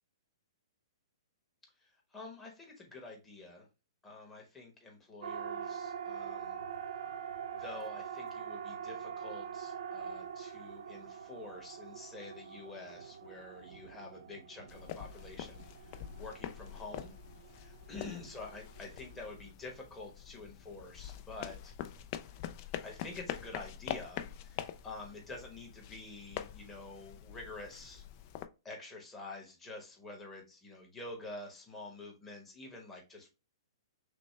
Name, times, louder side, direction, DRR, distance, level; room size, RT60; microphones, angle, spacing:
voice 1, 1.8-3.7 4.0-6.5 7.5-17.1 17.5-21.7 22.8-28.0 28.6-33.3, left 2 dB, 10° left, -1 dB, 1.0 m, -48 dB
Siren, 5.2-19.5, right 7 dB, 75° right, 0.6 m, -44 dB
sound 1, 14.7-28.5, left 11 dB, 30° left, 0.3 m, -45 dB
6.0 x 2.1 x 3.2 m, 0.29 s
hypercardioid pair, 160°, 3 cm